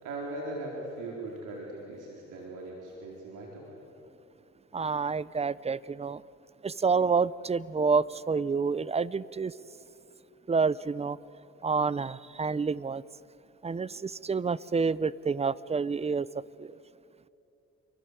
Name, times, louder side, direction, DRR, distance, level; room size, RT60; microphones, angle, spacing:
voice 1, 0.0-3.7, right 2 dB, 90° right, -2 dB, 4.4 m, -39 dB
voice 2, 4.7-6.2 6.6-9.5 10.5-11.2 11.6-13.0 13.6-16.3 16.6-16.7, right 5 dB, 20° right, 20 dB, 0.6 m, -28 dB
28.5 x 23.5 x 8.3 m, 2.8 s
cardioid pair, 90°, 30 cm